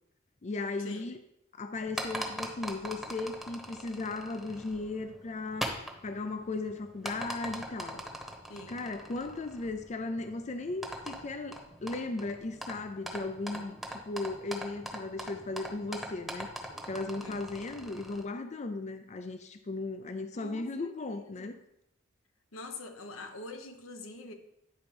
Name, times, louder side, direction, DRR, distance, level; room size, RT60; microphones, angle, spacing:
voice 1, 0.4-1.2 1.5-8.0 8.7-21.6, left 3 dB, 35° left, 8 dB, 0.4 m, -37 dB
sound 1, 1.7-18.2, equal, ahead, 1.0 m, -42 dB
voice 2, 8.5-8.8 13.5-13.6 17.2-17.4 20.3-21.5 22.5-24.3, left 2 dB, 90° left, 5 dB, 1.0 m, -45 dB
10.0 x 3.9 x 5.2 m, 0.80 s
head